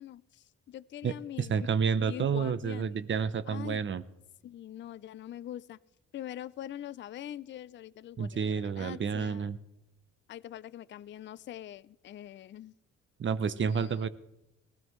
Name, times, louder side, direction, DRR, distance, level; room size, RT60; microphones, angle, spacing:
voice 1, 0.0-1.6 2.0-3.0 3.5-3.8 4.4-5.8 6.1-9.5 10.3-12.7 13.7-14.1, left 11 dB, 40° left, 17 dB, 0.4 m, -43 dB
voice 2, 1.0-4.0 8.2-9.6 13.2-14.1, right 6 dB, 40° right, 15 dB, 0.8 m, -30 dB
19.5 x 14.5 x 3.1 m, 0.89 s
cardioid pair, 90°, 30 cm